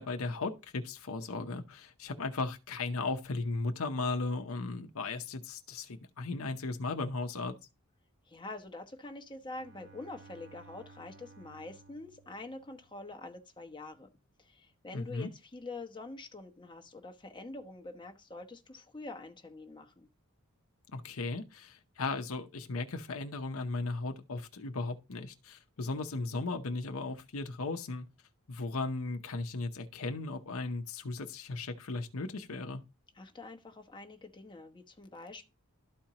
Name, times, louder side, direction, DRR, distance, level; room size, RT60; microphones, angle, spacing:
voice 1, 0.0-7.6 14.9-15.3 20.9-28.1 28.5-32.8, left 3 dB, 70° left, 0.8 m, -36 dB
voice 2, 8.2-14.1 14.4-20.1 33.2-35.4, left 2 dB, 20° left, 1.0 m, -46 dB
Bowed string instrument, 9.4-13.2, right 3 dB, 55° right, 1.2 m, -57 dB
12.5 x 4.4 x 2.9 m
head